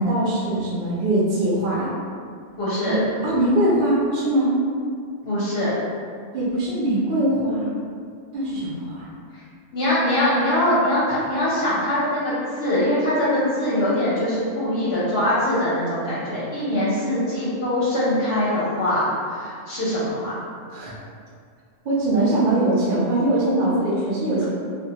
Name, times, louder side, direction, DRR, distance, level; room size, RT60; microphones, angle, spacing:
voice 1, 0.0-1.9 2.9-4.5 6.3-7.7 8.3-9.1 20.7-21.0 21.8-24.4, right 1 dB, 65° right, -6 dB, 0.5 m, -22 dB
voice 2, 2.6-3.0 5.2-5.7 9.3-9.4 9.7-20.3, left 1 dB, 60° left, -9 dB, 0.8 m, -22 dB
2.2 x 2.1 x 2.7 m, 2.2 s
omnidirectional pair, 1.4 m